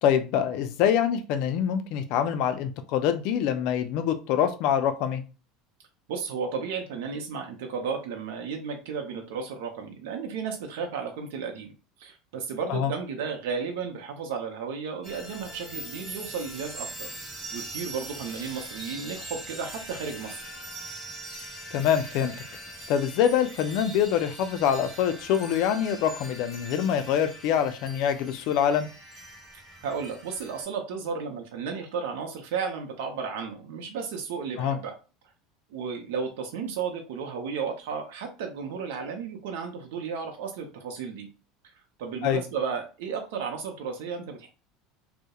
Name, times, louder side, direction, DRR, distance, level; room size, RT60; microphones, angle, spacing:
voice 1, 0.0-5.2 12.7-12.9 21.7-22.3 22.9-28.9 34.6-34.8 42.2-42.4, left 9 dB, 55° left, 8 dB, 0.4 m, -25 dB
voice 2, 6.1-11.7 12.0-17.1 17.5-20.5 29.8-34.9 35.7-41.3 42.0-44.5, right 6 dB, 80° right, 3 dB, 0.5 m, -33 dB
sound 1, 15.0-30.6, right 1 dB, 20° right, 1.1 m, -42 dB
2.3 x 2.0 x 2.8 m, 0.33 s
supercardioid pair, 150°, 0 cm